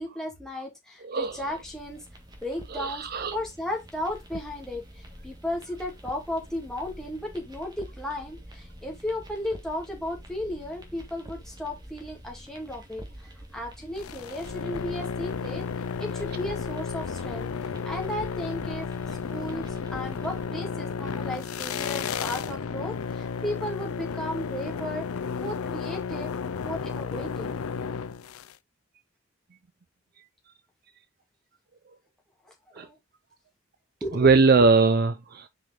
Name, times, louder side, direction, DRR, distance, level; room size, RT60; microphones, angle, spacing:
voice 1, 0.0-2.0 2.4-15.6 16.0-18.9 19.3-25.1 25.4-26.3 26.6-27.5 32.4-33.0 34.0-34.3, left 1 dB, ahead, 2.4 m, -35 dB
voice 2, 1.0-1.4 2.7-3.4 32.8-32.9 34.1-35.5, right 3 dB, 45° right, 0.5 m, -21 dB
sound 1, 1.2-20.4, right 1 dB, 20° right, 1.6 m, -47 dB
sound 2, 14.0-28.5, left 6 dB, 85° left, 0.5 m, -33 dB
6.1 x 5.1 x 3.6 m
head